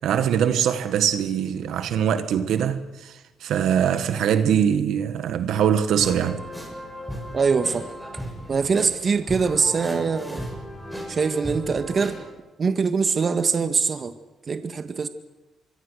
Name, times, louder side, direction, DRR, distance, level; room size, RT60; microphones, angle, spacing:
voice 1, 0.0-6.4, right 8 dB, 75° right, 1.6 m, -22 dB
sound 1, 6.0-12.3, equal, 5° left, 7.4 m, -36 dB
voice 2, 7.3-7.9 8.5-10.5 11.1-12.2 12.6-14.1 14.5-15.1, right 5 dB, 40° right, 1.7 m, -23 dB
25.0 x 24.0 x 6.5 m
cardioid pair, 90°, 0 cm